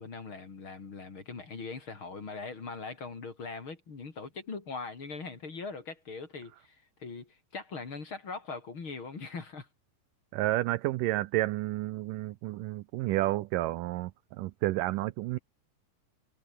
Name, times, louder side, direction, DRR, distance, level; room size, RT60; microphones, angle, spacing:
voice 1, 0.0-9.7, left 4 dB, 35° left, 3.5 m, -41 dB
voice 2, 10.3-14.1 14.4-15.4, right 17 dB, 85° right, 1.9 m, -30 dB
omnidirectional pair, 4.5 m